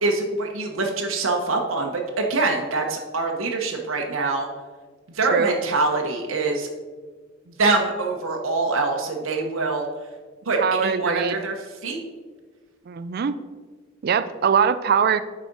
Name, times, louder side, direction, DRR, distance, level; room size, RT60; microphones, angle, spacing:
voice 1, 0.0-4.5 5.1-6.7 7.5-9.9 10.5-11.5 11.8-12.0, right 3 dB, 85° right, 1 dB, 0.8 m, -24 dB
voice 2, 10.6-11.3 12.9-13.3 14.0-15.2, right 6 dB, 50° right, 12 dB, 0.4 m, -22 dB
8.2 x 4.9 x 3.9 m, 1.4 s
head